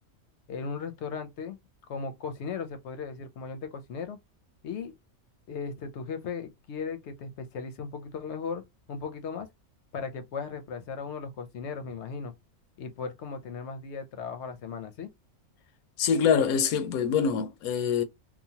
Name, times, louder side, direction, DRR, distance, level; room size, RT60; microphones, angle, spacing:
voice 1, 0.5-1.6 1.9-4.2 4.6-5.0 5.5-9.5 9.9-12.3 12.8-15.1, left 5 dB, 60° left, 0.8 m, -37 dB
voice 2, 16.0-18.0, left 7 dB, 85° left, 1.1 m, -25 dB
2.9 x 2.2 x 2.8 m
omnidirectional pair, 1.5 m